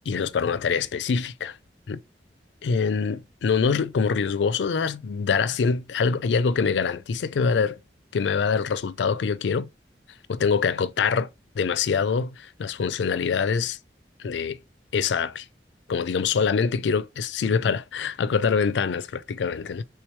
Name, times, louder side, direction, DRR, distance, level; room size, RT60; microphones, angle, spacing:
voice 1, 0.1-1.6 1.9-2.0 2.6-7.8 8.1-9.7 10.3-11.3 11.6-13.8 14.2-14.6 14.9-15.5 15.9-19.8, left 5 dB, 85° left, 0.4 m, -24 dB
3.3 x 3.1 x 3.1 m
head